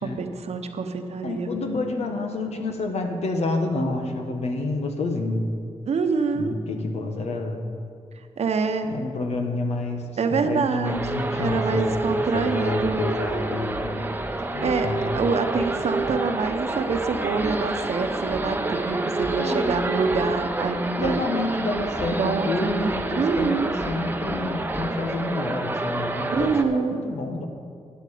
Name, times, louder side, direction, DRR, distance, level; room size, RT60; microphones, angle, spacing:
voice 1, 0.0-1.5 5.9-6.6 8.4-8.9 10.2-11.1 11.4-13.0 14.6-14.9 15.1-21.3 22.1-23.8 26.3-27.0, right 5 dB, 70° right, 7 dB, 1.0 m, -26 dB
voice 2, 1.2-5.5 6.3-7.6 8.9-13.9 14.5-15.2 19.4-19.9 21.0-27.5, left 2 dB, 75° left, 4 dB, 1.4 m, -29 dB
sound 1, 10.8-26.6, right 2 dB, 15° right, 0.8 m, -28 dB
11.5 x 10.5 x 5.1 m, 2.3 s
cardioid pair, 75°, 11 cm